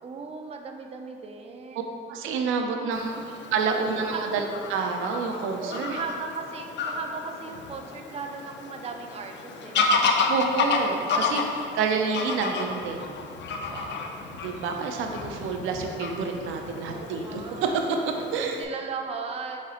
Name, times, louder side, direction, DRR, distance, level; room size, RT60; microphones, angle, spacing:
voice 1, 0.0-2.0 2.6-2.8 3.5-4.4 5.6-10.3 11.4-11.5 11.9-12.2 13.7-14.2 16.8-17.8 18.2-19.6, right 5 dB, 30° right, 3 dB, 0.4 m, -38 dB
voice 2, 2.1-3.2 3.5-6.0 10.3-13.2 14.3-18.6, right 5 dB, 90° right, 3 dB, 0.4 m, -28 dB
Fowl / Bird vocalization bird call bird song, 2.9-18.6, left 4 dB, 65° left, 0.5 m, -31 dB
4.7 x 4.2 x 2.4 m, 2.5 s
cardioid pair, 90°, 20 cm